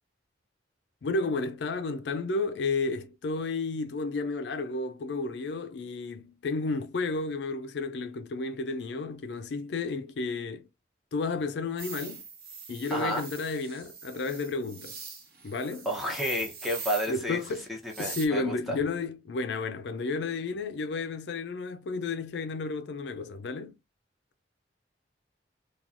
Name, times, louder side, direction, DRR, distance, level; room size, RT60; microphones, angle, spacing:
voice 1, 1.0-10.7 11.1-12.2 12.7-15.0 15.4-15.9 17.1-17.6 18.0-23.8, left 3 dB, 65° left, 0.4 m, -32 dB
sound 1, 11.8-18.3, right 5 dB, 55° right, 0.8 m, -43 dB
voice 2, 12.9-13.3 15.8-17.4 17.8-18.8, equal, ahead, 0.7 m, -31 dB
3.0 x 2.2 x 2.5 m
head